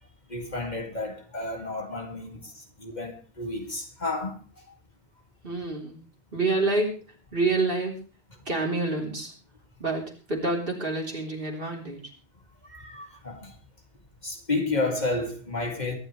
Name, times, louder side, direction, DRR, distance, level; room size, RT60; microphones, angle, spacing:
voice 1, 0.3-4.4 12.6-13.5 14.2-16.0, left 2 dB, 45° left, 2.7 m, -31 dB
voice 2, 5.4-5.9 6.3-7.0 7.3-8.0 8.5-9.3 9.8-12.1, right 2 dB, 60° right, 3.9 m, -27 dB
23.0 x 12.0 x 3.3 m
omnidirectional pair, 1.1 m